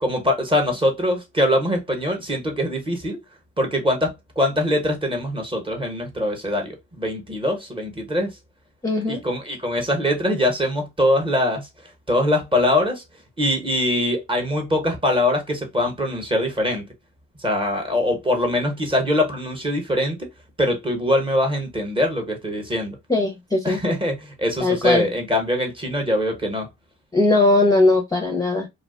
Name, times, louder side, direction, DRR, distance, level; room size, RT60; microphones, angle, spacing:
voice 1, 0.0-3.2 3.6-8.3 9.1-11.7 12.1-13.0 13.4-16.8 17.4-20.3 20.6-23.0 23.6-26.7, left 1 dB, 15° right, 0.9 m, -22 dB
voice 2, 8.8-9.2 23.1-23.8 24.6-25.1 27.1-28.7, left 2 dB, 10° left, 0.6 m, -19 dB
2.4 x 2.3 x 2.3 m
cardioid pair, 90°, 30 cm